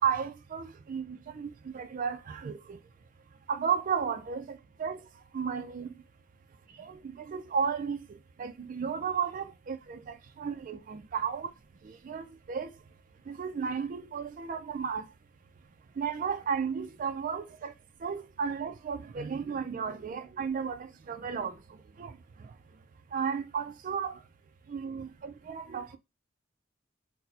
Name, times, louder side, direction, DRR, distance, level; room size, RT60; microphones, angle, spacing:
voice 1, 0.0-2.8 3.5-5.0 5.3-5.9 6.8-8.0 8.4-10.0 10.4-11.5 12.0-12.7 13.3-15.0 16.0-17.7 18.0-21.5 22.0-22.1 23.1-24.2 24.7-26.0, right 6 dB, 40° right, 0.4 m, -33 dB
4.3 x 2.1 x 2.6 m
head